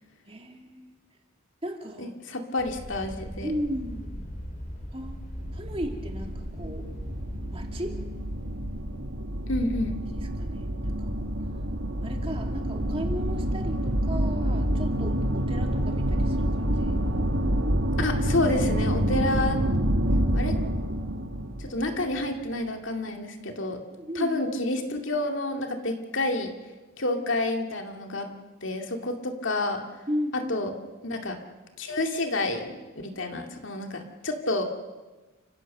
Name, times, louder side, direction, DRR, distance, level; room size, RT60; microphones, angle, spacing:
voice 1, 0.3-0.9 1.6-2.1 3.4-4.3 4.9-5.2 5.5-6.9 7.5-8.0 10.1-10.9 11.2-11.4 12.0-17.0 24.0-24.4 30.1-30.5, equal, 25° right, 3 dB, 2.3 m, -35 dB
voice 2, 2.0-3.5 9.5-10.0 18.0-19.6 20.3-20.6 21.6-23.8 24.1-26.5 27.0-28.3 28.6-29.8 30.3-30.7 31.0-31.4 31.8-32.7 33.0-34.6, left 2 dB, 65° left, 4 dB, 2.4 m, -29 dB
sound 1, 2.6-20.0, equal, 40° left, 4.4 m, -40 dB
sound 2, 5.4-22.4, equal, 70° right, 2.0 m, -28 dB
29.5 x 16.0 x 6.7 m, 1.2 s
head